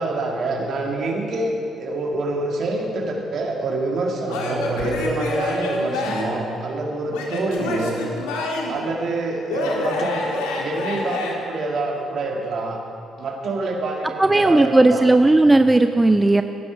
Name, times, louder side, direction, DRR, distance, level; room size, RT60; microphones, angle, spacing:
voice 1, 0.0-8.0 8.7-12.8 13.2-15.0, right 2 dB, 55° right, 1 dB, 2.2 m, -26 dB
Male speech man speaking / Yell / Laughter, 4.3-6.4 7.1-8.8 9.5-11.3, left 2 dB, 75° left, 1.6 m, -27 dB
voice 2, 14.2-16.4, right 2 dB, 15° right, 9 dB, 0.5 m, -15 dB
15.5 x 11.5 x 4.6 m, 2.7 s
hypercardioid pair, 45°, 0 cm